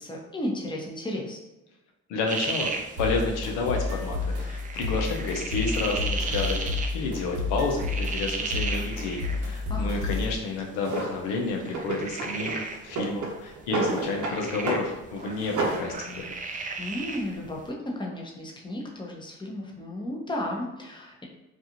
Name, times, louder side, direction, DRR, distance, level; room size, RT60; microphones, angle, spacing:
voice 1, 0.0-1.4 9.7-10.0 16.8-21.2, left 1 dB, 10° left, -1 dB, 0.7 m, -34 dB
voice 2, 2.1-16.3, left 3 dB, 85° left, 1 dB, 0.6 m, -30 dB
sound 1, 2.3-17.7, right 4 dB, 25° right, 0.3 m, -36 dB
sound 2, 3.0-10.4, left 3 dB, 80° right, 0.8 m, -30 dB
Drawer open or close, 10.8-11.1 11.7-12.6 12.9-14.4 14.7-14.9 15.2-15.9, right 3 dB, 50° right, 0.8 m, -30 dB
2.5 x 2.4 x 2.8 m, 0.99 s
hypercardioid pair, 50°, 38 cm